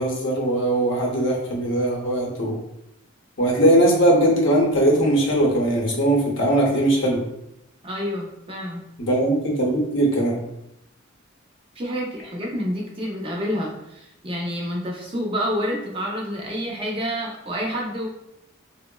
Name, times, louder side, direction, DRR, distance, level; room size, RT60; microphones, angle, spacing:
voice 1, 0.0-2.6 3.4-7.2 9.0-10.4, right 1 dB, 65° left, -1 dB, 0.7 m, -20 dB
voice 2, 7.8-8.8 11.8-18.1, equal, 25° right, -2 dB, 0.5 m, -28 dB
3.6 x 2.0 x 2.2 m, 0.82 s
head